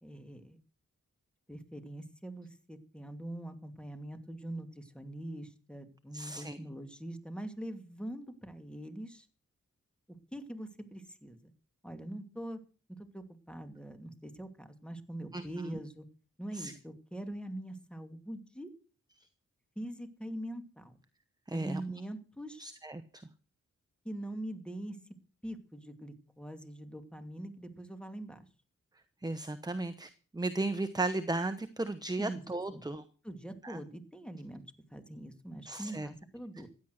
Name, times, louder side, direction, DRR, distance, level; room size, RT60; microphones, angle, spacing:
voice 1, 0.0-0.6 1.5-9.3 10.3-11.5 11.8-12.6 12.9-16.1 16.4-18.7 19.8-21.0 21.5-22.7 24.0-25.0 25.4-28.4 32.2-32.4 32.7-32.8 33.2-34.6 34.9-36.7, right 1 dB, 5° left, 7 dB, 2.5 m, -43 dB
voice 2, 6.1-6.6 15.3-15.8 16.5-16.7 21.5-21.8 22.6-23.0 29.2-33.0 33.6-33.8 35.7-36.1, right 2 dB, 15° right, 11 dB, 1.0 m, -35 dB
16.0 x 10.5 x 6.5 m, 0.38 s
cardioid pair, 65°, 30 cm